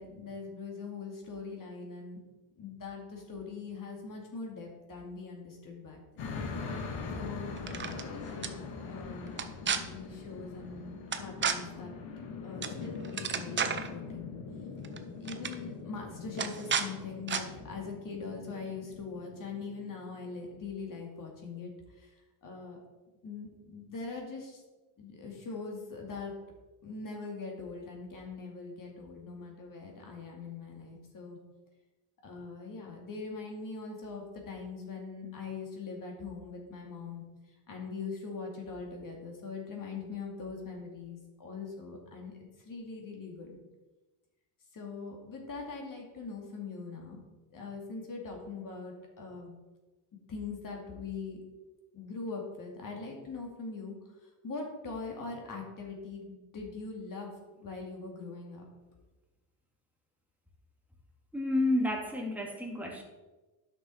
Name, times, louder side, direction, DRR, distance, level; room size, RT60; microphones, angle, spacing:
voice 1, 0.0-2.2 2.6-6.3 7.1-7.5 7.8-8.5 8.8-9.3 9.6-11.9 12.4-14.3 15.2-22.8 23.2-24.6 25.0-26.3 26.8-31.4 32.2-37.2 37.7-43.6 44.7-47.2 47.5-49.6 50.3-51.4 51.9-54.0 54.4-57.3 57.6-58.6, left 4 dB, 45° left, 1 dB, 2.3 m, -42 dB
sound 1, 6.2-20.4, left 4 dB, 80° left, 1.6 m, -42 dB
sound 2, 7.6-8.0 8.4-8.5 9.3-9.8 11.1-11.6 12.6-12.8 13.0-13.9 14.8-15.0 15.3-15.5 16.4-16.9 17.3-17.4, right 6 dB, 25° right, 0.7 m, -31 dB
voice 2, 61.3-63.0, left 1 dB, 5° right, -1 dB, 1.9 m, -30 dB
9.4 x 6.1 x 4.2 m, 1.1 s
cardioid pair, 100°, 45 cm